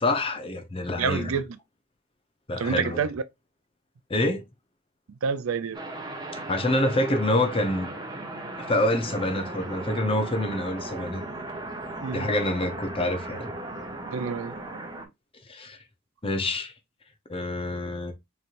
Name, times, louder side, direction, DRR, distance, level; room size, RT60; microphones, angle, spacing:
voice 1, 0.0-1.4 2.5-3.0 4.1-4.4 6.3-7.9 8.6-11.2 12.1-13.5 15.5-15.8 16.2-16.7 17.3-18.1, left 1 dB, 25° left, 0.8 m, -26 dB
voice 2, 1.0-1.6 2.6-3.2 5.2-5.8 12.0-12.3 14.1-14.6, right 6 dB, 75° right, 0.5 m, -28 dB
sound 1, 5.7-15.1, right 2 dB, 20° right, 0.9 m, -37 dB
4.3 x 3.2 x 2.5 m
head